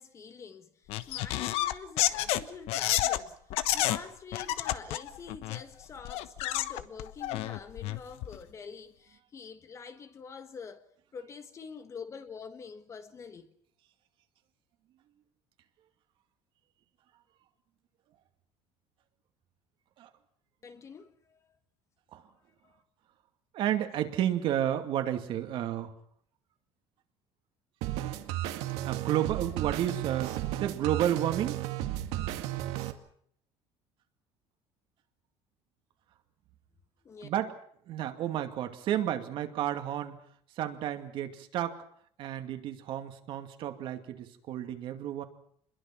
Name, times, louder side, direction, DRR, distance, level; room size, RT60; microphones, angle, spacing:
voice 1, 0.0-10.8 11.1-13.5 20.6-21.5 22.2-22.3 22.6-22.8 37.0-37.3, left 5 dB, 30° left, 1.5 m, -46 dB
sound 1, 0.9-3.2 3.5-4.0 4.3-5.6 6.1-8.4, left 14 dB, 70° left, 1.2 m, -30 dB
voice 2, 23.5-25.9 28.8-31.6 37.2-37.5 37.9-40.2 40.6-41.8 42.2-45.2, right 11 dB, 55° right, 2.5 m, -31 dB
sound 2, 27.8-32.9, right 13 dB, 80° right, 2.2 m, -34 dB
27.0 x 22.0 x 6.1 m
cardioid pair, 155°, 11 cm